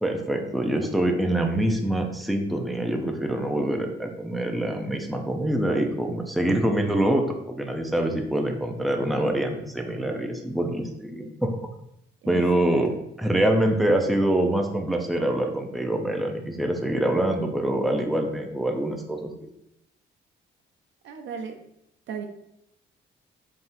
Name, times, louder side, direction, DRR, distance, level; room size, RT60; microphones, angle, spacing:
voice 1, 0.0-11.5 12.3-12.9 13.2-19.3, right 1 dB, ahead, 3 dB, 0.6 m, -25 dB
voice 2, 12.2-13.0 21.0-21.6 22.1-22.3, right 6 dB, 70° right, 5 dB, 0.7 m, -37 dB
4.1 x 3.7 x 2.6 m, 0.79 s
cardioid pair, 90°, 20 cm